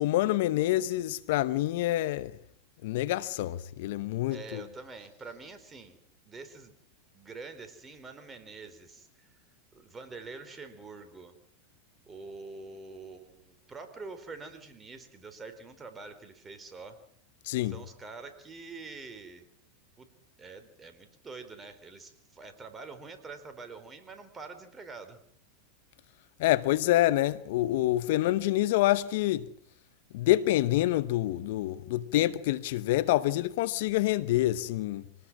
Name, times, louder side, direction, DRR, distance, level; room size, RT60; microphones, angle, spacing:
voice 1, 0.0-2.3 2.8-4.6 17.5-17.8 26.4-29.5 30.1-35.0, left 15 dB, 65° left, 1.0 m, -27 dB
voice 2, 4.3-6.0 6.3-6.7 7.1-9.3 9.7-11.3 12.1-17.0 17.6-19.5 20.0-20.1 20.4-25.2, right 4 dB, 20° right, 4.3 m, -45 dB
26.0 x 19.5 x 6.2 m
hypercardioid pair, 100°, 0 cm